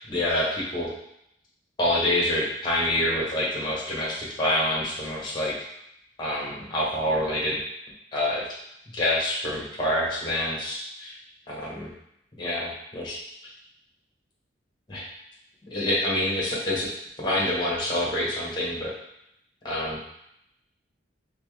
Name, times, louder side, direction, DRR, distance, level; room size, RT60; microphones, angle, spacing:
voice 1, 0.1-0.9 1.8-5.5 6.2-7.6 8.1-8.4 8.9-11.1 11.5-11.9 12.4-13.2 14.9-15.1 15.7-16.9 17.2-18.9 19.6-20.0, left 1 dB, 25° left, -4 dB, 1.2 m, -26 dB
4.4 x 3.5 x 3.3 m, 0.78 s
head